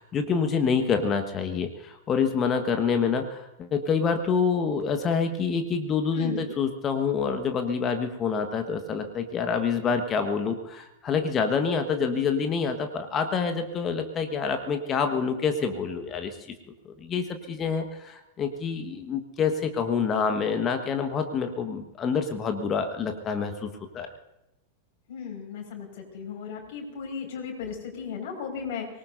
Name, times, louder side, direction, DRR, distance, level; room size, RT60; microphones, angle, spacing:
voice 1, 0.0-16.5 16.8-24.1, left 5 dB, 25° left, 6 dB, 1.4 m, -27 dB
voice 2, 6.1-6.5 25.1-28.9, left 6 dB, 50° left, 1 dB, 5.3 m, -36 dB
24.5 x 19.5 x 2.7 m, 0.88 s
figure-of-eight pair, 90°, 0 cm